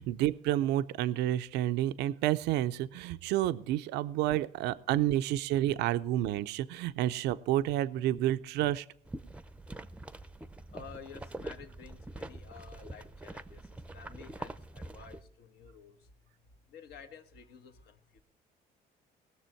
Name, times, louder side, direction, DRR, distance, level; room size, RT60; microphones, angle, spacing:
voice 1, 0.0-8.9, right 13 dB, 85° right, 12 dB, 0.5 m, -30 dB
sound 1, 9.0-15.2, right 2 dB, 5° right, 0.5 m, -45 dB
voice 2, 9.4-16.3 16.7-18.2, left 6 dB, 75° left, 7 dB, 1.3 m, -52 dB
19.0 x 6.9 x 4.5 m, 0.62 s
cardioid pair, 110°, 17 cm